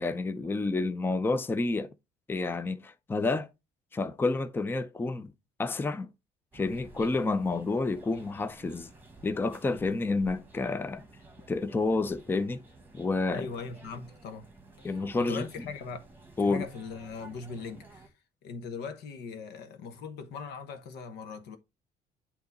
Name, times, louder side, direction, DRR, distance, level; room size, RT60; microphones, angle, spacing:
voice 1, 0.0-1.9 2.3-3.5 3.9-5.3 5.6-6.1 6.5-8.9 9.2-11.0 11.5-12.6 12.9-13.5 14.8-15.4 16.4-16.6, left 3 dB, 15° left, 0.5 m, -29 dB
sound 1, 6.5-18.1, right 2 dB, 10° right, 1.3 m, -53 dB
voice 2, 13.3-14.5 14.8-16.1 16.4-18.1 18.4-21.6, left 5 dB, 80° left, 1.1 m, -40 dB
8.1 x 2.9 x 3.9 m
cardioid pair, 110°, 17 cm